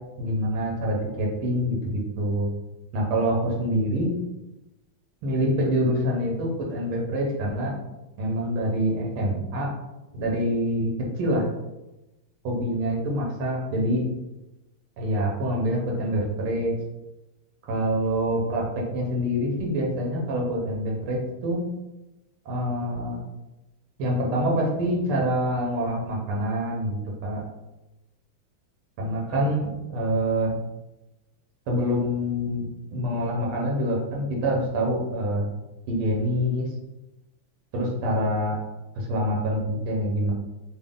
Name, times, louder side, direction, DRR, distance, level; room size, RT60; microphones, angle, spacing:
voice 1, 0.2-2.5 2.9-4.1 5.2-7.7 8.2-9.7 10.1-10.9 11.2-11.4 12.4-14.0 15.0-16.7 17.7-18.7 18.9-21.6 22.5-23.2 24.0-27.4 29.0-30.6 31.7-32.6 32.9-35.5 35.9-36.7 37.7-38.6 39.0-40.3, equal, 85° right, -1 dB, 1.8 m, -26 dB
4.0 x 2.1 x 3.6 m, 1.0 s
omnidirectional pair, 2.4 m